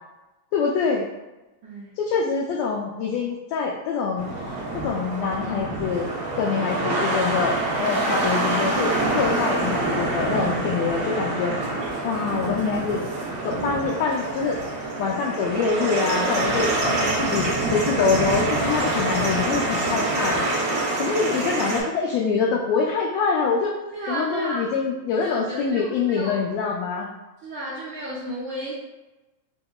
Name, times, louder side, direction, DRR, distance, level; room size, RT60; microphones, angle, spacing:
voice 1, 0.5-1.1 2.0-4.3 4.7-6.1 6.4-11.6 12.0-13.0 13.4-14.6 15.0-17.5 17.7-20.4 21.0-23.7 24.1-27.1, left 5 dB, 80° left, -1 dB, 1.7 m, -25 dB
voice 2, 1.6-1.9 16.7-17.4 21.1-21.2 21.5-21.8 23.9-24.7 25.2-26.3 27.4-28.7, right 1 dB, 85° right, -9 dB, 1.1 m, -33 dB
sound 1, 4.2-21.8, right 2 dB, 60° right, 1.1 m, -26 dB
5.3 x 2.8 x 2.3 m, 1.1 s
omnidirectional pair, 3.3 m